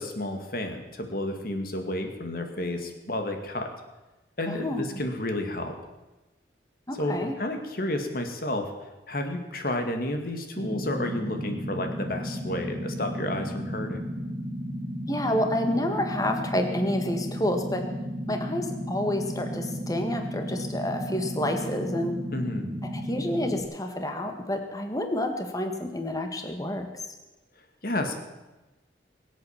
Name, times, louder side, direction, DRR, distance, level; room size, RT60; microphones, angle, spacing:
voice 1, 0.0-3.7 4.4-5.7 6.9-8.7 9.1-14.0 22.3-22.7 27.8-28.1, left 1 dB, 55° left, 5 dB, 2.2 m, -31 dB
voice 2, 4.5-4.8 6.9-7.4 15.1-17.8 18.3-22.2 22.8-26.9, left 1 dB, 20° left, 5 dB, 1.8 m, -29 dB
sound 1, 10.5-23.6, equal, 60° right, 2.2 m, -34 dB
22.0 x 8.5 x 7.3 m, 1.1 s
head